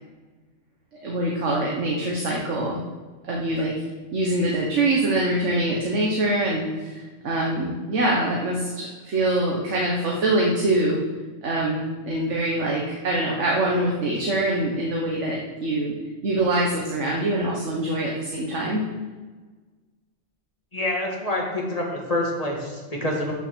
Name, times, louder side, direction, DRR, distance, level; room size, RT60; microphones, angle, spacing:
voice 1, 1.0-2.8 3.2-3.7 4.1-11.0 11.4-15.9 16.2-18.8, right 1 dB, 80° right, -3 dB, 1.6 m, -24 dB
voice 2, 20.7-23.3, left 1 dB, 30° left, -1 dB, 2.0 m, -27 dB
8.3 x 6.8 x 6.3 m, 1.3 s
omnidirectional pair, 1.2 m